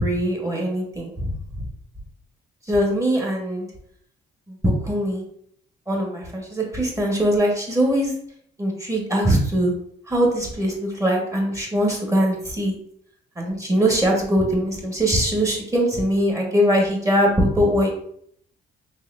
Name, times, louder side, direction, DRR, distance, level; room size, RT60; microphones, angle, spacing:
voice 1, 0.0-1.3 2.7-3.7 4.5-5.2 5.9-8.1 8.6-9.7 10.1-12.8 13.4-17.9, equal, 15° right, 0 dB, 1.3 m, -21 dB
4.1 x 3.4 x 2.5 m, 0.67 s
cardioid pair, 90°, 20 cm